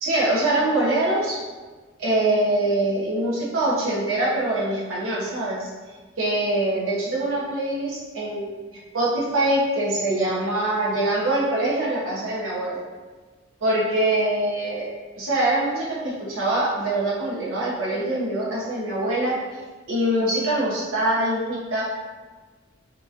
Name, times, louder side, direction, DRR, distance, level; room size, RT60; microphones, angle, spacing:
voice 1, 0.0-1.4 2.0-5.7 6.2-8.6 8.9-12.8 13.6-14.9 15.2-19.4 19.9-21.8, right 1 dB, 85° right, -6 dB, 0.9 m, -23 dB
2.8 x 2.5 x 2.5 m, 1.3 s
head